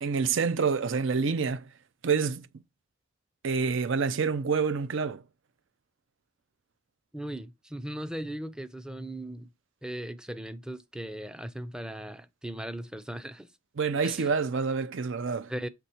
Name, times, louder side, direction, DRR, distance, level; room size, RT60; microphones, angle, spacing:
voice 1, 0.0-1.6 2.0-2.5 3.4-5.2 13.8-15.5, right 5 dB, 70° right, 0.5 m, -27 dB
voice 2, 7.1-9.5 9.8-13.5 14.0-14.3 15.5-15.7, right 1 dB, 5° right, 0.5 m, -38 dB
6.7 x 3.4 x 4.4 m
head